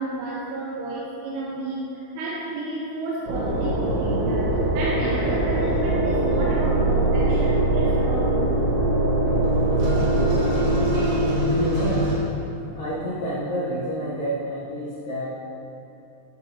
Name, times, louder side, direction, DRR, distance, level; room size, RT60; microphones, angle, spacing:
voice 1, 0.0-8.6, right 2 dB, 90° right, -5 dB, 3.2 m, -31 dB
sound 1, 3.3-12.2, right 1 dB, 65° right, 3.2 m, -22 dB
voice 2, 11.5-12.1 12.7-15.3, equal, 75° left, -10 dB, 2.0 m, -28 dB
13.0 x 5.1 x 2.9 m, 2.8 s
omnidirectional pair, 5.3 m